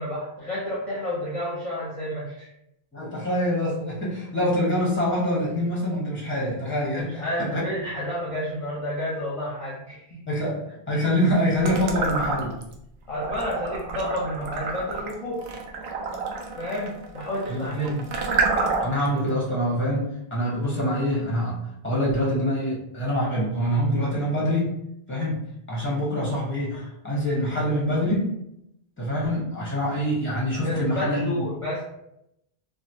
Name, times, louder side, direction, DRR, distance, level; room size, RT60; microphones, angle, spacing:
voice 1, 0.0-2.5 6.9-10.2 13.1-15.4 16.6-18.0 30.6-31.8, equal, 35° left, -8 dB, 0.8 m, -30 dB
voice 2, 2.9-7.7 10.3-10.6 10.9-12.5 17.5-17.9 18.8-21.6 21.8-24.8 25.1-25.4 25.7-28.3 29.0-31.3, equal, 10° left, -5 dB, 1.0 m, -25 dB
sound 1, 11.6-12.7 13.1-19.1, right 4 dB, 80° right, 0.8 m, -28 dB
3.0 x 2.5 x 2.6 m, 0.81 s
omnidirectional pair, 1.1 m